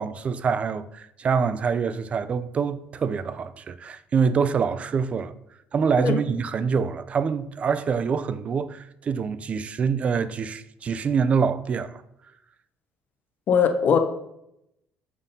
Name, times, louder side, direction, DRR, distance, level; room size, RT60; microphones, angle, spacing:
voice 1, 0.0-5.3 5.7-12.0, right 6 dB, 30° right, 0.3 m, -25 dB
voice 2, 13.5-14.0, left 7 dB, 50° left, 0.6 m, -20 dB
7.2 x 2.7 x 5.3 m
cardioid pair, 135°, 4 cm